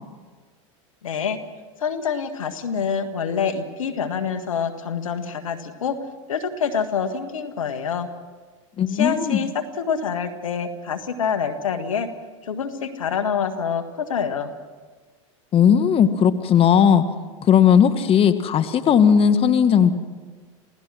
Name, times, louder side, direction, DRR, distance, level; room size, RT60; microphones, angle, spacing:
voice 1, 1.0-1.4 1.8-6.0 6.3-8.1 8.9-12.1 12.4-14.5, left 6 dB, 85° left, 9 dB, 1.6 m, -26 dB
voice 2, 8.8-9.4 15.5-17.0 17.4-19.9, left 8 dB, 35° left, 10 dB, 1.4 m, -16 dB
28.0 x 17.0 x 6.2 m, 1.4 s
hypercardioid pair, 95°, 17 cm